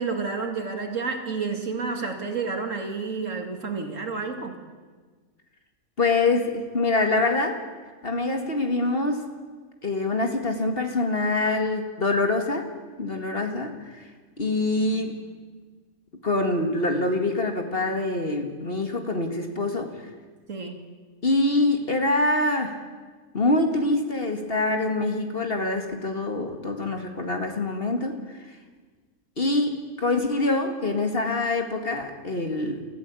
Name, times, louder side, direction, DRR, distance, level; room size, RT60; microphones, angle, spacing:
voice 1, 0.0-4.6 14.9-15.1 20.5-20.8, right 4 dB, 60° right, 4 dB, 2.5 m, -30 dB
voice 2, 6.0-7.6 8.0-9.3 9.8-12.7 13.0-14.1 14.4-15.2 16.2-19.9 21.2-22.8 23.3-28.6 29.4-32.8, left 2 dB, 40° left, 4 dB, 2.2 m, -25 dB
28.0 x 14.5 x 8.4 m, 1.4 s
omnidirectional pair, 1.6 m